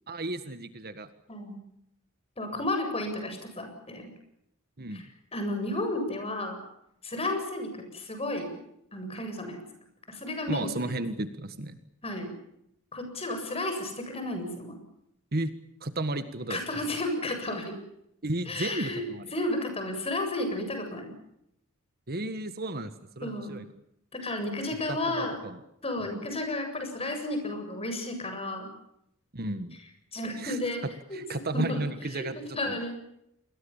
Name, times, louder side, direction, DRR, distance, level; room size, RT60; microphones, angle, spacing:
voice 1, 0.1-1.1 4.8-5.1 10.5-11.8 15.3-15.5 15.8-16.6 18.2-19.3 22.1-23.7 24.9-25.6 26.0-26.2 29.3-29.8 30.4-30.6 31.1-32.8, right 2 dB, 45° right, 11 dB, 1.6 m, -33 dB
voice 2, 1.3-1.6 2.4-4.1 4.9-6.6 7.0-8.5 8.9-9.6 10.1-11.0 12.0-12.3 12.9-14.7 16.5-17.8 18.5-19.0 19.3-21.1 23.2-23.6 24.1-25.4 25.8-28.7 30.1-30.8 31.1-31.2 31.5-31.8 32.1-33.0, left 1 dB, 25° left, 6 dB, 7.7 m, -32 dB
28.5 x 22.0 x 7.3 m, 0.78 s
head